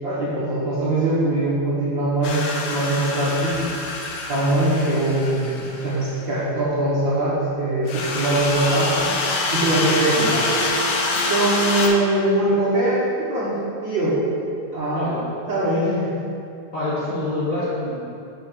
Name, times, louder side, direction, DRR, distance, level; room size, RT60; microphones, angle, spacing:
voice 1, 0.0-3.7 4.3-9.1 9.5-10.6 11.3-13.6 13.8-14.2 14.7-15.1 15.5-16.2, right 1 dB, 60° right, -8 dB, 1.2 m, -22 dB
sound 1, 2.2-6.1 7.8-11.9, left 3 dB, 80° left, 1.2 m, -25 dB
voice 2, 16.7-17.9, left 2 dB, 40° left, -11 dB, 1.2 m, -26 dB
7.6 x 3.4 x 6.1 m, 2.6 s
omnidirectional pair, 3.4 m